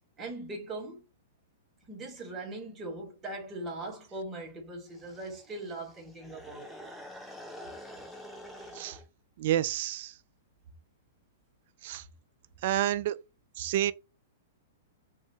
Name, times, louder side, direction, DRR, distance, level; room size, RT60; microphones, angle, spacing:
voice 1, 0.2-1.0 1.9-6.8 8.6-8.8, right 2 dB, 20° right, 1.5 m, -40 dB
sound 1, 4.9-9.0, left 1 dB, 5° left, 0.8 m, -47 dB
voice 2, 9.4-10.2 11.8-12.0 12.6-13.2 13.6-13.9, right 12 dB, 55° right, 0.3 m, -29 dB
2.7 x 2.7 x 3.4 m
hypercardioid pair, 120°, 0 cm